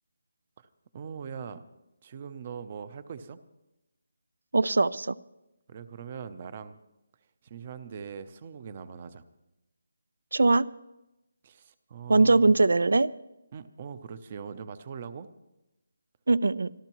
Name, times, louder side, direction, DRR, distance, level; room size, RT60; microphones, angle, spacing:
voice 1, 0.9-1.6 2.0-3.4 5.7-6.8 7.4-9.2 11.4-12.6 13.5-15.3, right 6 dB, 25° right, 14 dB, 0.6 m, -41 dB
voice 2, 4.5-5.1 10.3-10.7 12.1-13.1 16.3-16.7, right 3 dB, 80° right, 21 dB, 0.4 m, -21 dB
25.5 x 13.0 x 3.0 m, 0.94 s
hypercardioid pair, 175°, 0 cm